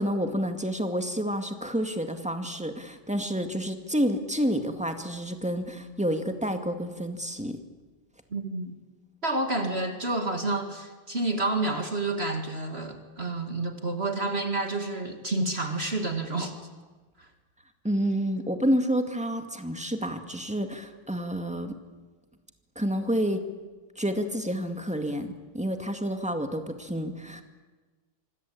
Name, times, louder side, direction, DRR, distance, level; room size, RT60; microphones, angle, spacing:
voice 1, 0.0-7.6 17.8-21.7 22.8-23.4 24.0-27.4, equal, 5° right, 6 dB, 2.0 m, -29 dB
voice 2, 8.3-8.8 9.2-16.6 17.2-17.3, right 2 dB, 30° right, 5 dB, 2.3 m, -29 dB
26.0 x 26.0 x 8.7 m, 1.3 s
omnidirectional pair, 2.2 m